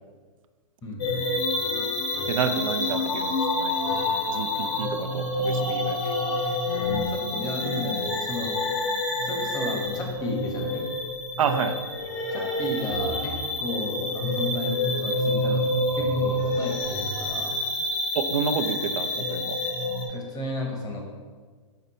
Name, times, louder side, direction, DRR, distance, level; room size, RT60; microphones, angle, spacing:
voice 1, 0.8-1.2 6.7-8.6 9.2-10.8 12.3-15.6 15.9-17.6 20.1-21.0, left 1 dB, 20° left, 1 dB, 1.2 m, -33 dB
sound 1, 1.0-20.0, left 2 dB, 45° left, 1.2 m, -27 dB
voice 2, 2.3-3.7 4.3-6.1 11.4-11.8 18.1-19.6, right 7 dB, 75° right, 8 dB, 0.6 m, -29 dB
6.7 x 4.1 x 4.2 m, 1.5 s
hypercardioid pair, 135°, 17 cm